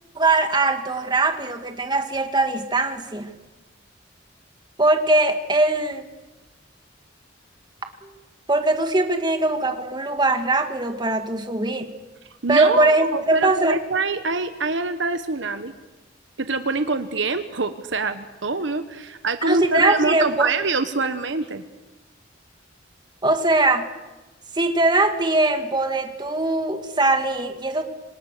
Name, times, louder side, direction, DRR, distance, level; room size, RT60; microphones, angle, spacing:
voice 1, 0.2-3.3 4.8-6.1 8.0-8.1 8.5-11.9 12.5-13.8 19.5-20.5 23.2-23.9 24.5-27.8, right 2 dB, 20° right, 6 dB, 2.2 m, -21 dB
voice 2, 12.4-15.7 16.4-21.6, right 3 dB, 65° right, 9 dB, 1.2 m, -25 dB
26.5 x 26.0 x 6.8 m, 1.1 s
head